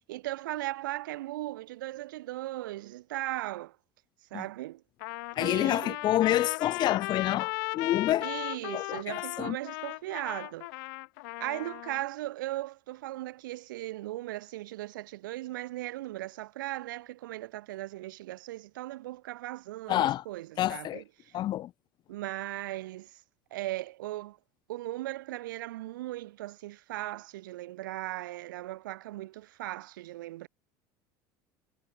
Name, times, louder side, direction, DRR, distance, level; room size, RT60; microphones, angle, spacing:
voice 1, 0.1-3.8 4.3-4.8 5.4-6.0 8.2-10.7 11.4-21.3 22.1-23.2 23.5-24.4 24.7-30.5, right 16 dB, 85° right, 3.4 m, -38 dB
Trumpet, 5.0-12.0, left 27 dB, 75° left, 1.4 m, -37 dB
voice 2, 5.4-8.3 8.7-9.6 19.9-20.2 20.6-21.0 21.3-21.7, left 13 dB, 45° left, 0.5 m, -28 dB
supercardioid pair, 95°, 10 cm